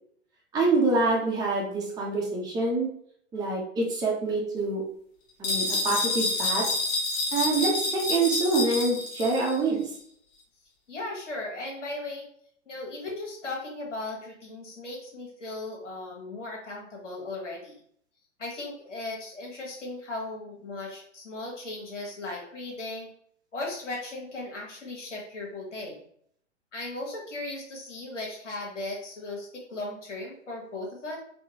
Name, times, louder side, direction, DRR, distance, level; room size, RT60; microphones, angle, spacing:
voice 1, 0.5-2.9 3.3-4.8 5.4-6.6 7.3-9.9, right 3 dB, 10° right, -4 dB, 0.7 m, -26 dB
sound 1, 5.4-9.6, left 2 dB, 40° left, 1.1 m, -28 dB
voice 2, 10.9-12.3 12.6-17.7 18.4-23.1 23.5-26.0 26.7-31.2, left 2 dB, 80° left, -2 dB, 1.1 m, -37 dB
3.6 x 2.2 x 2.8 m, 0.64 s
figure-of-eight pair, 105°, 36 cm